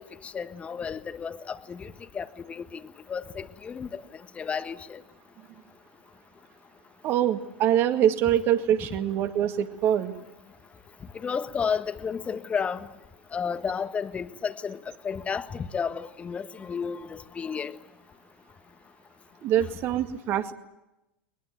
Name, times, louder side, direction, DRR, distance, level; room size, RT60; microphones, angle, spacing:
voice 1, 0.0-2.8 3.1-4.0 4.4-5.0 11.2-12.9 13.3-14.8 15.0-17.7, left 6 dB, 25° left, 1.4 m, -32 dB
voice 2, 7.0-10.2 19.4-20.5, right 10 dB, 40° right, 2.0 m, -24 dB
22.0 x 21.5 x 9.2 m
figure-of-eight pair, 85°, 6 cm